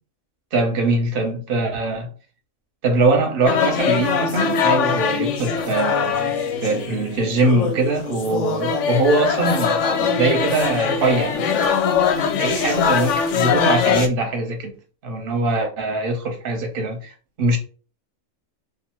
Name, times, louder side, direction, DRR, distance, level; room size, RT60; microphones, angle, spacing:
voice 1, 0.5-2.1 2.8-6.3 6.6-9.8 10.1-11.5 12.4-14.7 15.0-17.6, right 2 dB, 50° right, 0.8 m, -22 dB
sound 1, 3.5-14.1, left 6 dB, 70° left, 0.8 m, -22 dB
2.4 x 2.4 x 2.9 m
omnidirectional pair, 1.4 m